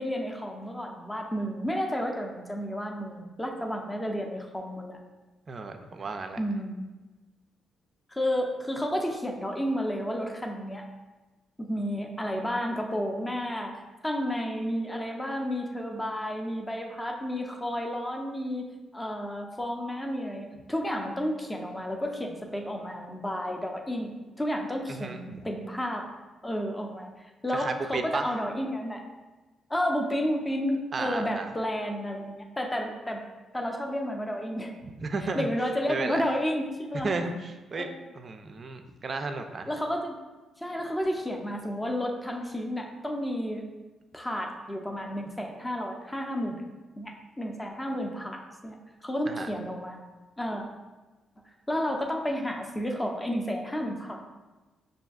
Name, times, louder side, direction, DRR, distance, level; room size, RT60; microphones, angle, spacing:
voice 1, 0.0-5.0 6.4-6.9 8.1-10.9 11.6-18.7 18.9-26.1 26.4-27.1 27.4-29.0 29.7-33.2 33.5-34.8 35.3-37.1 37.8-37.9 39.7-40.2 40.6-43.6 44.1-46.6 47.0-48.8 49.0-50.0 50.4-50.7 51.7-54.3, equal, 15° left, 1 dB, 0.5 m, -31 dB
voice 2, 5.5-6.4 24.9-25.4 27.5-28.3 30.9-31.5 35.0-35.5 35.9-36.3 37.0-37.9 38.2-39.7 49.3-49.5, right 3 dB, 40° right, 6 dB, 0.4 m, -33 dB
5.9 x 2.6 x 2.4 m, 1.2 s
cardioid pair, 95°, 0 cm